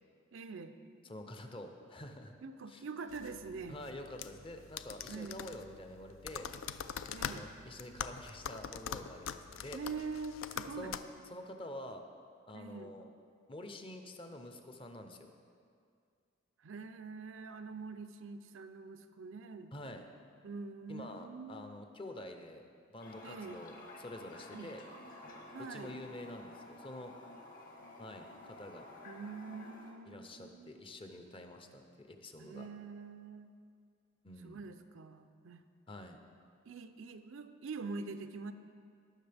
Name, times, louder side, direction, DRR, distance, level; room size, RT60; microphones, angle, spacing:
voice 1, 0.3-0.8 2.4-3.8 5.1-5.4 7.1-7.5 9.7-10.9 12.5-12.9 16.6-19.7 20.4-21.7 23.2-23.6 24.5-24.7 25.5-26.0 29.0-30.8 32.4-33.5 34.4-35.6 36.7-38.5, right 4 dB, 60° right, 9 dB, 0.5 m, -45 dB
voice 2, 1.0-2.3 2.7-2.8 3.7-6.5 7.2-9.8 10.8-10.9 11.3-12.0 12.5-13.0 13.5-15.3 19.7-20.1 20.9-22.6 22.9-24.8 25.6-27.1 28.0-28.9 30.1-32.7 34.2-34.6 35.9-36.2, left 1 dB, 25° left, 5 dB, 0.6 m, -47 dB
sound 1, 3.1-11.0, left 7 dB, 65° left, 0.4 m, -44 dB
Toilet flush, 23.0-29.9, left 2 dB, 40° left, 1.2 m, -52 dB
18.0 x 6.3 x 3.4 m, 2.3 s
head